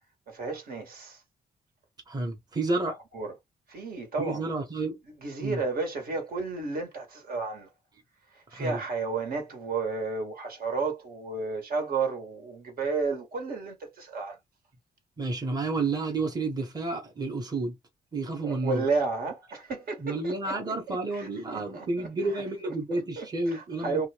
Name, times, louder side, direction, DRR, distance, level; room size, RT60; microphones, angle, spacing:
voice 1, 0.3-1.2 2.9-3.3 3.7-4.5 5.2-7.7 8.3-14.4 18.4-20.5 20.9-24.1, right 4 dB, 65° right, 1.5 m, -32 dB
voice 2, 2.1-3.0 4.2-5.0 5.4-5.6 8.5-8.8 15.2-17.8 18.1-18.8 20.0-24.1, right 3 dB, 25° right, 1.1 m, -30 dB
2.5 x 2.3 x 3.2 m
cardioid pair, 120°, 17 cm